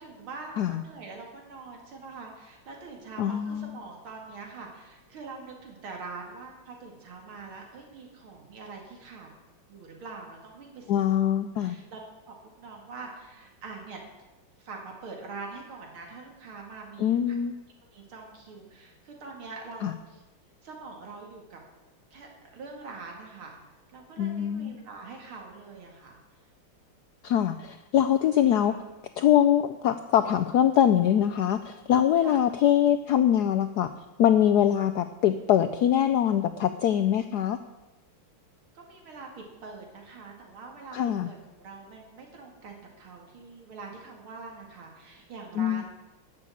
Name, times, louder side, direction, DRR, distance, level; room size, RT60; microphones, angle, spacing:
voice 1, 0.0-9.3 9.7-11.3 11.6-12.0 12.3-14.0 14.6-17.4 17.9-20.2 20.6-21.6 22.1-23.6 23.9-26.2 28.5-28.8 32.2-32.4 38.7-45.8, right 4 dB, 75° right, 1 dB, 2.8 m, -44 dB
voice 2, 3.2-3.8 10.9-11.8 17.0-17.5 19.8-19.9 24.2-24.8 27.2-28.7 29.2-33.9 34.2-37.6 40.9-41.3 45.6-45.8, left 10 dB, 80° left, 10 dB, 0.9 m, -23 dB
13.0 x 6.8 x 8.5 m, 1.1 s
omnidirectional pair, 2.3 m